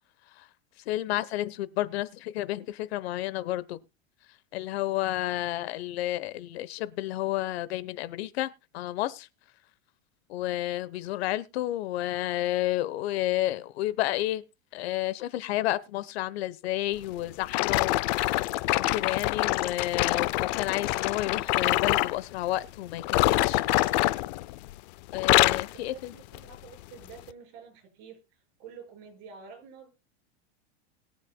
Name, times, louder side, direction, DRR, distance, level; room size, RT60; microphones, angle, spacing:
voice 1, 0.9-3.8 4.5-9.3 10.3-14.4 14.7-18.0 18.3-23.6 25.1-26.1, left 15 dB, 65° left, 1.0 m, -31 dB
sound 1, 17.5-22.2 23.0-24.8 25.1-25.7 26.3-26.5 27.2-27.3, left 18 dB, 40° left, 0.5 m, -25 dB
voice 2, 25.5-29.9, right 6 dB, 50° right, 5.9 m, -49 dB
22.0 x 7.4 x 2.2 m
supercardioid pair, 165°, 33 cm